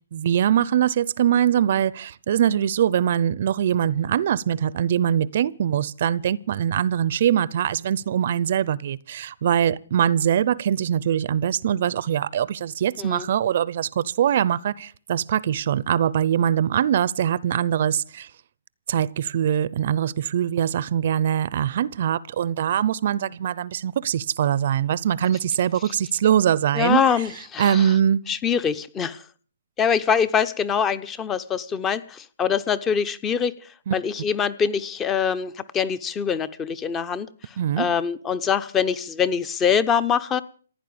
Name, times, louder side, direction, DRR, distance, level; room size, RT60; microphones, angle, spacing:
voice 1, 0.1-18.3 18.9-27.0 27.6-28.2 33.9-34.0 37.6-37.9, right 9 dB, 55° right, 0.7 m, -22 dB
voice 2, 26.7-27.9 28.3-29.2 29.8-33.5 33.9-37.3 37.8-40.4, left 7 dB, 15° left, 0.9 m, -24 dB
16.0 x 10.0 x 8.8 m
hypercardioid pair, 150°, 0 cm